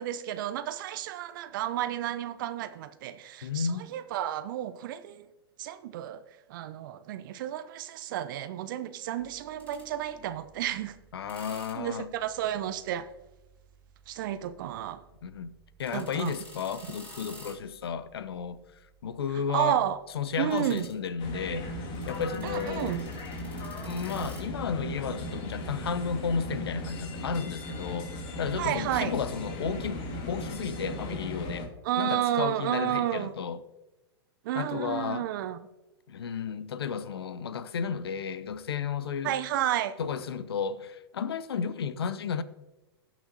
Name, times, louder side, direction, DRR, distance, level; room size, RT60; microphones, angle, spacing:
voice 1, 0.0-5.3 5.6-6.2 6.5-11.0 11.8-13.1 14.1-15.0 15.9-16.3 19.5-20.0 20.4-20.9 22.4-23.0 28.6-29.1 31.8-33.3 34.4-35.6 39.2-39.9, right 12 dB, 55° right, 0.6 m, -31 dB
voice 2, 3.4-3.9 11.1-12.1 15.2-15.5 15.8-18.6 19.0-19.8 20.1-21.7 22.1-23.0 23.8-33.6 34.5-35.3 36.1-39.4 40.0-42.4, left 6 dB, 70° left, 0.6 m, -33 dB
sound 1, 9.2-25.9, equal, 10° left, 3.2 m, -53 dB
sound 2, 21.2-31.7, left 1 dB, 40° left, 1.7 m, -37 dB
17.0 x 6.0 x 2.7 m
figure-of-eight pair, 105°, 13 cm